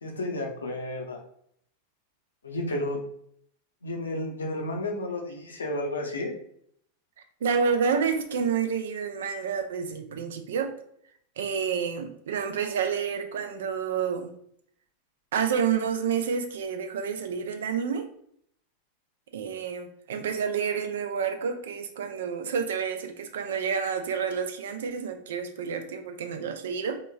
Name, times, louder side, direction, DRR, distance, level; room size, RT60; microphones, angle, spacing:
voice 1, 0.0-1.2 2.4-3.0 3.8-6.3, left 1 dB, 70° left, 1 dB, 0.6 m, -32 dB
voice 2, 7.4-10.7 11.4-14.3 15.3-18.1 19.3-27.0, right 6 dB, 60° right, 6 dB, 0.4 m, -29 dB
3.5 x 2.9 x 2.2 m, 0.67 s
figure-of-eight pair, 90°, 0 cm